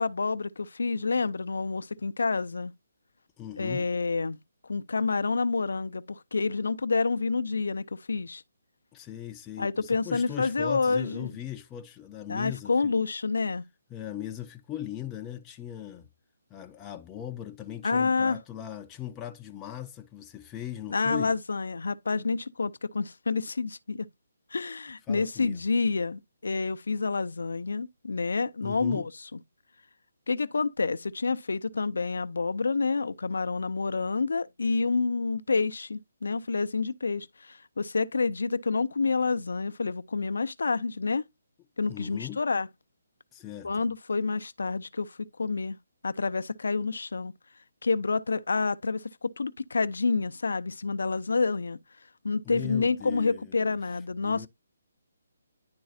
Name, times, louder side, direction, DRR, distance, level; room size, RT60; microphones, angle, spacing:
voice 1, 0.0-2.7 3.6-4.4 4.7-8.4 9.6-11.3 12.3-13.6 17.8-18.4 20.9-24.1 24.5-29.4 30.3-41.2 41.8-42.7 43.6-45.8 46.0-47.3 47.8-51.8 52.2-54.5, left 4 dB, 70° left, 0.5 m, -28 dB
voice 2, 3.4-3.9 8.9-13.0 13.9-16.1 16.5-21.3 25.1-25.6 28.6-29.1 41.9-42.4 43.3-43.9 52.4-53.8 54.1-54.5, left 11 dB, 15° left, 0.5 m, -39 dB
10.5 x 3.9 x 2.6 m
figure-of-eight pair, 140°, 0 cm